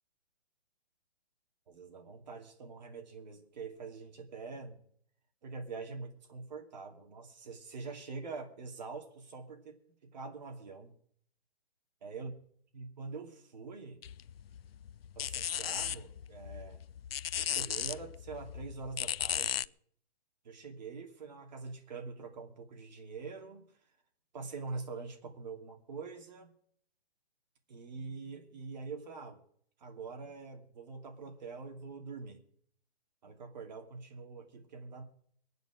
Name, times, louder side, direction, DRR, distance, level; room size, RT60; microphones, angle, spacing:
voice 1, 1.7-4.8 5.4-9.8 10.1-10.9 12.0-12.3 12.7-14.0 15.1-16.8 17.4-19.7 20.4-23.7 24.3-26.5 27.7-29.4 29.8-32.4 33.2-35.0, right 4 dB, 45° right, 3 dB, 2.6 m, -44 dB
sound 1, 14.0-19.7, left 10 dB, 65° left, 0.5 m, -36 dB
23.0 x 9.5 x 4.9 m, 0.62 s
hypercardioid pair, 175°, 32 cm